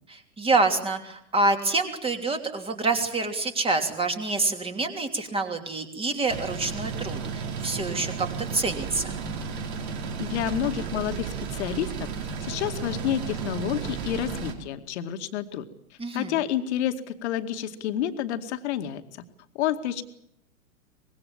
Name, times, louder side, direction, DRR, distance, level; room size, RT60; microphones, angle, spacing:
voice 1, 0.1-8.3 8.5-9.1 16.0-16.3, right 3 dB, 15° right, 5 dB, 3.1 m, -27 dB
sound 1, 6.3-14.5, right 6 dB, 45° right, 4.7 m, -33 dB
voice 2, 10.2-12.1 12.4-15.6 16.1-19.0 19.6-20.0, left 11 dB, 50° left, 7 dB, 2.2 m, -29 dB
24.5 x 21.0 x 7.4 m, 0.79 s
figure-of-eight pair, 110°, 43 cm